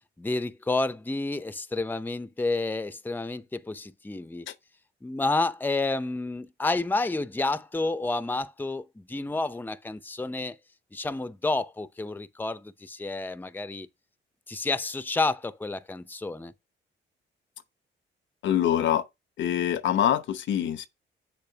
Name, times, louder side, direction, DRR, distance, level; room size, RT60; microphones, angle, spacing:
voice 1, 0.2-4.5 5.0-10.6 10.9-13.9 14.5-16.5, left 3 dB, 10° left, 0.7 m, -30 dB
voice 2, 18.4-19.1 19.4-20.9, left 10 dB, 70° left, 0.9 m, -25 dB
7.7 x 6.9 x 2.9 m
cardioid pair, 90°, 20 cm